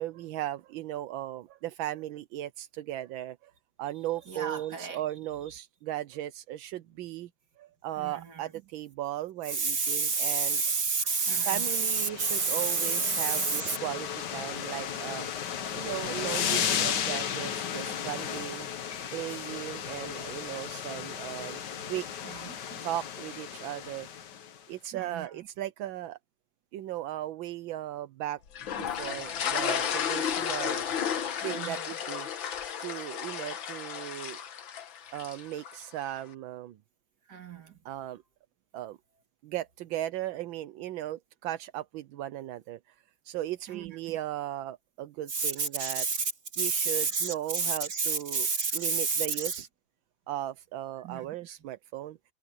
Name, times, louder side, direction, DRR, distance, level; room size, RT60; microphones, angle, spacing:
voice 1, 0.0-3.5 3.8-7.3 7.6-10.6 11.5-15.3 15.7-18.7 19.1-22.1 22.8-24.2 24.7-26.2 26.7-28.4 28.7-30.8 31.4-32.3 32.8-34.4 35.1-36.8 37.8-38.2 38.7-39.0 39.4-43.0 43.2-46.1 46.6-48.5 48.7-49.7 50.3-52.2, right 13 dB, 85° right, 1.6 m, -37 dB
voice 2, 4.3-5.1 8.0-8.5 9.5-13.8 22.2-22.8 24.9-25.5 31.3-31.9 37.3-37.8 43.7-44.2 45.3-49.6 51.0-51.3, right 5 dB, 55° right, 3.1 m, -30 dB
sound 1, 11.3-24.6, left 8 dB, 65° left, 1.7 m, -35 dB
sound 2, 28.6-35.8, left 8 dB, 80° left, 2.1 m, -33 dB
omnidirectional pair, 2.1 m